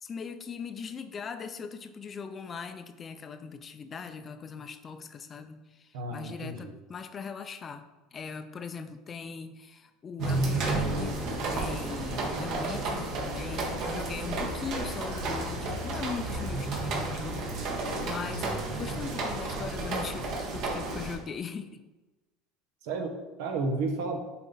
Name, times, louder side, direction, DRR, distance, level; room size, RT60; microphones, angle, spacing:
voice 1, 0.0-11.2 11.5-21.8, left 6 dB, 30° left, 9 dB, 0.5 m, -40 dB
voice 2, 5.9-6.7 22.8-24.2, right 3 dB, 75° right, 4 dB, 1.2 m, -32 dB
sound 1, 10.2-21.1, right 2 dB, 60° right, 1.6 m, -32 dB
7.2 x 4.4 x 4.0 m, 1.1 s
supercardioid pair, 110°, 0 cm